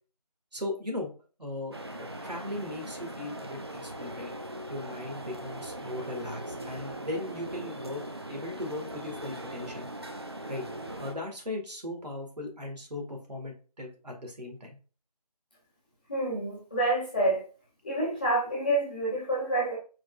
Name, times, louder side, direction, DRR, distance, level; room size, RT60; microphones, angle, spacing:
voice 1, 0.5-1.1 1.4-1.8 2.2-4.3 4.7-8.0 8.3-9.9 10.5-10.6 11.0-14.8, left 1 dB, 80° right, 2 dB, 2.0 m, -37 dB
sound 1, 1.7-11.1, right 1 dB, 40° right, 0.5 m, -40 dB
voice 2, 16.1-17.4 17.8-19.8, right 1 dB, 15° left, -7 dB, 1.1 m, -28 dB
4.6 x 4.5 x 2.5 m, 0.36 s
figure-of-eight pair, 170°, 21 cm